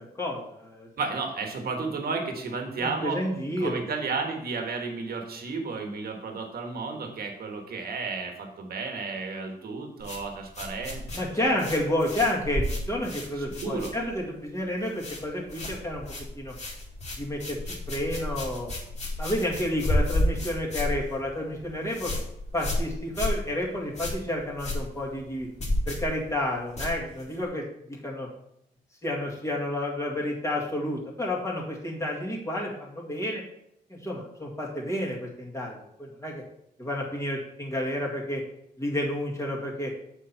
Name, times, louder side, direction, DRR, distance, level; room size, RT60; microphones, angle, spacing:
voice 1, 0.2-0.9 2.8-3.8 11.1-16.5 17.2-18.7 19.2-22.1 22.5-25.5 25.9-28.3 29.0-33.4 33.9-36.4 36.8-38.4 38.8-39.9, left 1 dB, 15° left, -3 dB, 2.0 m, -30 dB
voice 2, 1.0-3.2 3.6-11.6 13.4-13.9, right 4 dB, 65° right, 4 dB, 1.5 m, -33 dB
sound 1, 10.0-14.4 14.6-15.2 15.5-27.5, left 1 dB, 40° left, 2.3 m, -32 dB
7.2 x 4.5 x 5.6 m, 0.76 s
wide cardioid pair, 130°, 17 cm